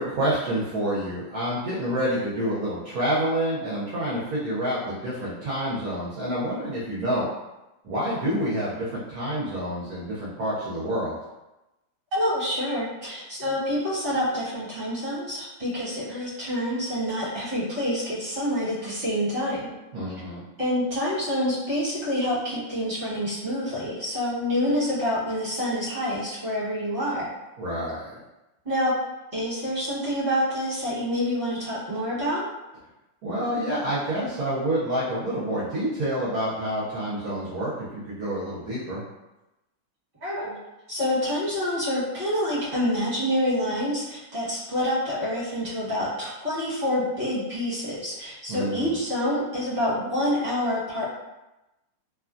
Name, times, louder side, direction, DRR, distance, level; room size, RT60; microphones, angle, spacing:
voice 1, 0.0-7.2 7.8-11.1 19.9-20.4 27.6-28.2 33.2-39.0 48.5-48.9, right 1 dB, 65° right, -8 dB, 1.0 m, -28 dB
voice 2, 12.1-19.7 20.6-27.3 28.6-28.9 29.3-32.4 40.2-40.6 40.9-51.0, equal, 30° right, -9 dB, 1.3 m, -27 dB
3.0 x 2.3 x 2.5 m, 1.0 s
omnidirectional pair, 2.1 m